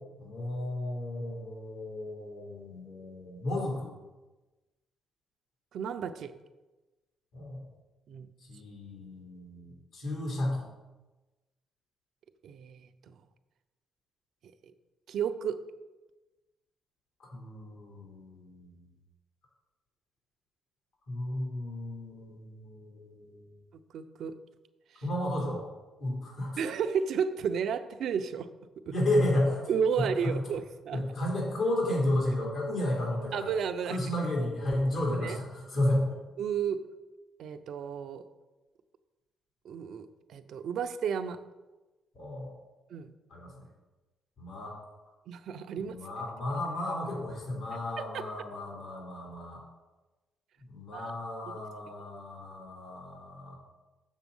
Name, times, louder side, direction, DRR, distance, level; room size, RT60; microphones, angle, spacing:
voice 1, 0.2-3.9 7.3-7.6 8.4-10.7 17.2-18.9 21.1-23.5 25.0-25.7 26.0-26.6 28.9-29.7 30.0-30.4 30.9-33.5 33.9-36.2 42.1-42.5 43.3-43.6 44.4-44.8 45.8-49.6 50.6-53.6, left 1 dB, 75° left, -4 dB, 3.2 m, -33 dB
voice 2, 5.7-6.3 8.1-8.3 12.4-13.2 15.1-15.6 23.9-24.3 26.6-28.5 29.7-31.0 33.3-34.0 35.2-35.4 36.4-36.8 37.4-38.2 39.6-41.4 42.9-43.1 45.3-46.0 48.0-48.2 50.9-51.1, right 7 dB, 70° right, 9 dB, 0.6 m, -32 dB
7.2 x 6.9 x 5.4 m, 1.1 s
cardioid pair, 90°, 0 cm